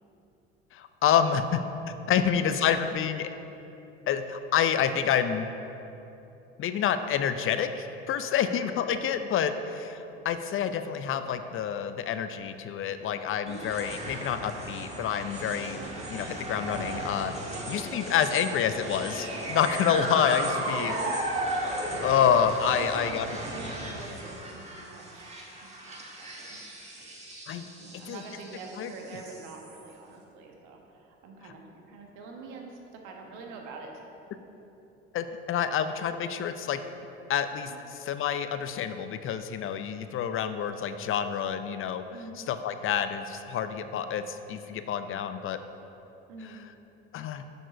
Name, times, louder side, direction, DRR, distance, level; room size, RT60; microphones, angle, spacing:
voice 1, 0.7-1.6 2.1-3.3 4.1-5.5 6.6-15.8 16.1-17.3 17.7-20.9 22.0-23.3 27.5-27.7 28.1-28.2 28.8-28.9 35.1-36.8 37.3-37.7 38.1-42.0 42.5-45.6 47.1-47.4, left 8 dB, 45° left, 10 dB, 0.5 m, -28 dB
voice 2, 2.1-2.8 8.3-8.5 13.4-13.7 15.7-15.9 17.5-17.7 20.7-21.3 22.6-26.6 26.9-27.1 27.8-34.0 37.7-37.8 42.1-42.4 46.3-46.6, right 4 dB, 70° right, 1 dB, 1.4 m, -44 dB
sound 1, 13.5-29.9, right 1 dB, 20° right, 1.6 m, -36 dB
6.8 x 6.1 x 5.2 m, 2.9 s
hypercardioid pair, 70°, 31 cm